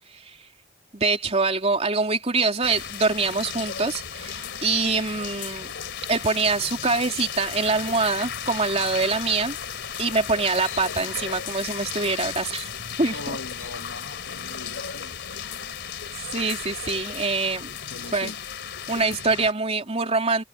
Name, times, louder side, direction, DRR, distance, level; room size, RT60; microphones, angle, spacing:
voice 1, 0.9-5.7 6.1-9.6 10.0-12.7 13.0-13.4 16.2-17.7 18.1-18.3 18.9-20.4, right 3 dB, 35° right, 3.5 m, -24 dB
sound 1, 2.6-19.5, left 8 dB, 60° left, 3.6 m, -35 dB
voice 2, 13.1-15.1 17.9-18.4, left 2 dB, 75° left, 1.5 m, -40 dB
head